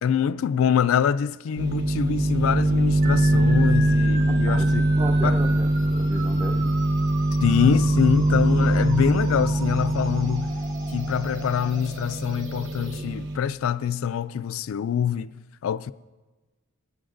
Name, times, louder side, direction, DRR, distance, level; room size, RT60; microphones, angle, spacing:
voice 1, 0.0-4.8 5.2-5.4 7.4-10.5 10.9-15.3 15.6-15.9, left 8 dB, 80° left, 0.3 m, -25 dB
sound 1, 1.6-13.4, right 1 dB, 55° right, 0.9 m, -22 dB
sound 2, 3.0-13.0, right 3 dB, 70° right, 2.0 m, -39 dB
voice 2, 4.3-6.7, right 1 dB, 20° right, 0.5 m, -35 dB
23.5 x 10.5 x 2.5 m
head